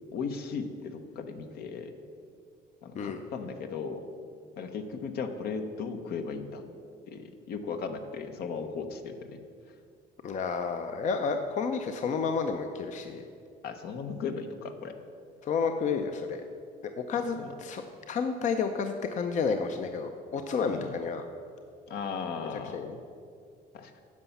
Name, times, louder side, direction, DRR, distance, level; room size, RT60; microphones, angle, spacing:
voice 1, 0.1-1.9 2.8-4.1 4.6-6.6 7.1-9.4 13.6-14.9 17.4-17.5 20.7-21.0 21.9-22.9 23.7-23.9, left 5 dB, 70° left, 7 dB, 1.0 m, -36 dB
voice 2, 10.2-13.3 15.4-16.4 17.1-21.2 22.7-23.0, left 5 dB, 45° left, 6 dB, 0.6 m, -31 dB
9.6 x 5.7 x 7.1 m, 2.3 s
cardioid pair, 110°, 17 cm